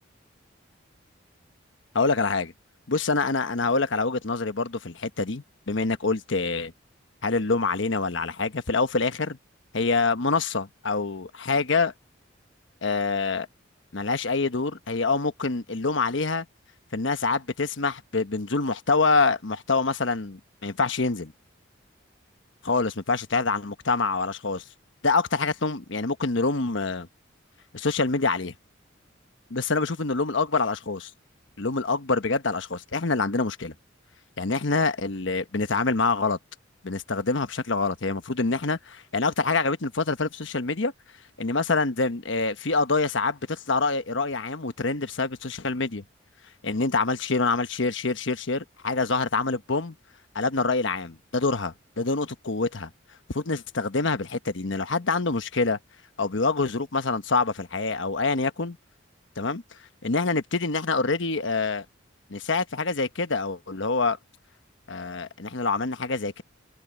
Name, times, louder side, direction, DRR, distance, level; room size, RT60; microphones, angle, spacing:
voice 1, 1.9-2.5 2.9-6.7 7.2-9.4 9.7-11.9 12.8-13.5 13.9-16.5 16.9-21.3 22.6-24.6 25.0-27.1 27.7-28.5 29.5-31.1 31.6-33.7 34.4-36.4 36.8-40.9 41.4-46.0 46.6-49.9 50.3-52.9 53.3-55.8 56.2-58.8 59.4-59.6 60.0-61.8 62.3-64.2 64.9-66.4, left 3 dB, 70° left, 1.1 m, -26 dB
open air
head